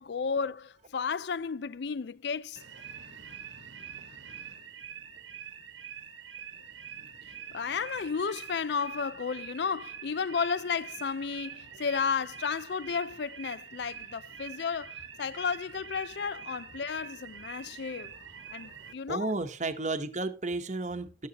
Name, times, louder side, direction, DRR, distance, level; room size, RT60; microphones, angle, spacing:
voice 1, 0.0-2.6 7.5-18.2 18.5-19.3, left 5 dB, 65° left, 0.5 m, -33 dB
sound 1, 2.6-18.9, right 8 dB, 85° right, 1.5 m, -45 dB
voice 2, 19.1-21.3, right 2 dB, 40° right, 1.0 m, -32 dB
12.5 x 9.6 x 2.9 m
head